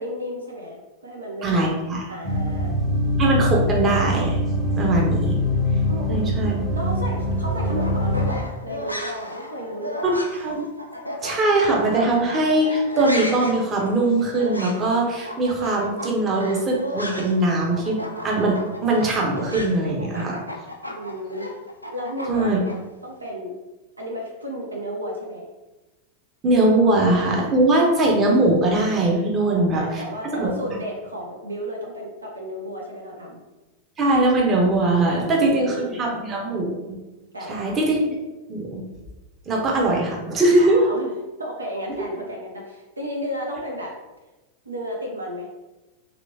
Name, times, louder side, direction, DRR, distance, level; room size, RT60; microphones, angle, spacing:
voice 1, 0.0-1.6 2.1-2.7 5.9-10.1 20.9-21.5 21.9-23.5 24.0-25.5 26.8-27.1 29.4-33.4 35.1-36.5 37.3-37.8 40.6-41.1 41.4-43.9 44.7-45.5, equal, 80° right, -1 dB, 0.5 m, -33 dB
voice 2, 1.4-2.0 3.2-4.4 4.8-5.4 6.1-6.5 10.0-10.7 11.2-20.4 22.3-22.6 26.4-30.0 30.4-30.5 34.0-36.7 37.5-38.2 38.5-38.8 39.5-40.8, right 2 dB, 25° right, -2 dB, 0.8 m, -21 dB
sound 1, 2.2-8.4, left 1 dB, 20° left, 0.6 m, -23 dB
sound 2, 7.7-17.5 17.7-22.7, left 1 dB, 90° left, 0.3 m, -35 dB
3.0 x 2.9 x 2.6 m, 1.1 s
figure-of-eight pair, 90°, 0 cm